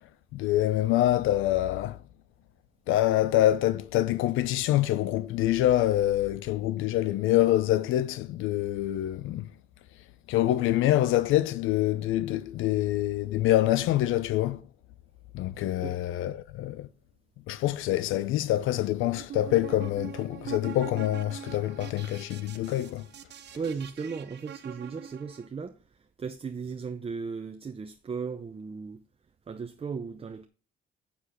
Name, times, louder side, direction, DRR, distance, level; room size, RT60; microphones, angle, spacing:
voice 1, 0.3-2.0 2.9-9.5 10.3-14.6 15.3-16.9 17.5-23.1, left 14 dB, 90° left, 0.5 m, -26 dB
sound 1, 19.1-25.5, right 9 dB, 60° right, 0.9 m, -43 dB
voice 2, 23.5-25.8 26.2-29.0 29.5-30.4, right 5 dB, 30° right, 0.7 m, -36 dB
7.1 x 6.5 x 5.7 m
cardioid pair, 90°, 20 cm